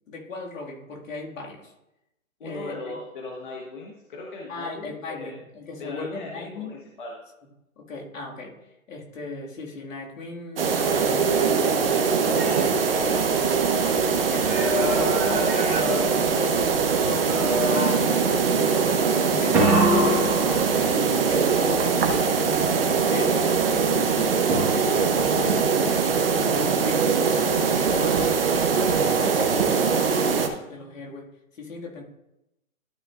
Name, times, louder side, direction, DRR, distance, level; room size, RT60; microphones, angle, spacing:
voice 1, 0.1-1.7 2.4-3.0 4.5-6.9 7.8-8.6 8.9-13.1 13.7-17.4 17.9-22.8 23.1-23.5 24.4-25.9 26.6-28.4 28.9-32.0, left 3 dB, 65° left, -1 dB, 2.0 m, -37 dB
voice 2, 2.4-5.3 5.8-7.2, left 2 dB, 35° left, -1 dB, 1.1 m, -38 dB
sound 1, 10.6-30.5, right 5 dB, 40° right, 0.8 m, -22 dB
sound 2, 12.0-13.9 14.4-16.8 17.2-18.2 19.5-21.1 24.5-25.1, equal, 5° right, 1.5 m, -27 dB
sound 3, 19.7-20.7, equal, 80° right, 1.7 m, -27 dB
12.5 x 6.0 x 2.4 m, 0.91 s
hypercardioid pair, 165°, 42 cm